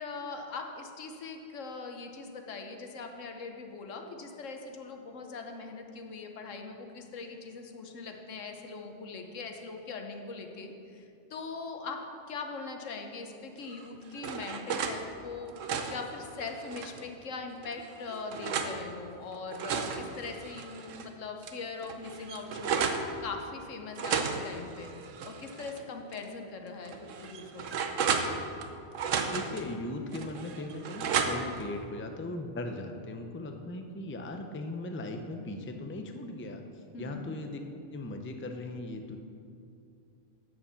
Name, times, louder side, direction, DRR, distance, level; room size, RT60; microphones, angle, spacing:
voice 1, 0.0-24.9 25.2-27.9 36.9-37.3, left 4 dB, 85° left, 4 dB, 1.3 m, -41 dB
sound 1, 13.7-15.0 15.4-17.1 17.6-18.8 19.3-21.1 21.4-21.5 21.8-23.1 23.9-25.8 26.1-26.2 26.9-28.7 29.0-29.6 30.1-31.6, right 6 dB, 85° right, 1.1 m, -33 dB
voice 2, 29.3-36.6 37.0-37.6 37.9-39.2, left 2 dB, 15° left, 5 dB, 0.4 m, -38 dB
8.6 x 7.0 x 7.1 m, 2.5 s
omnidirectional pair, 1.3 m